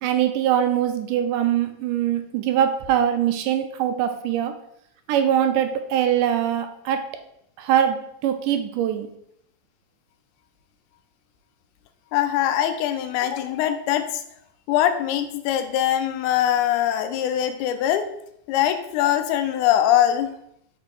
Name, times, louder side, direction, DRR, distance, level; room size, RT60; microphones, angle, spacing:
voice 1, 0.0-4.5 5.1-7.0 7.6-9.1, right 10 dB, 80° right, 7 dB, 2.0 m, -22 dB
voice 2, 12.1-14.2 14.7-18.0 18.5-20.3, left 11 dB, 90° left, 8 dB, 1.7 m, -22 dB
5.5 x 4.2 x 4.6 m, 0.74 s
omnidirectional pair, 4.0 m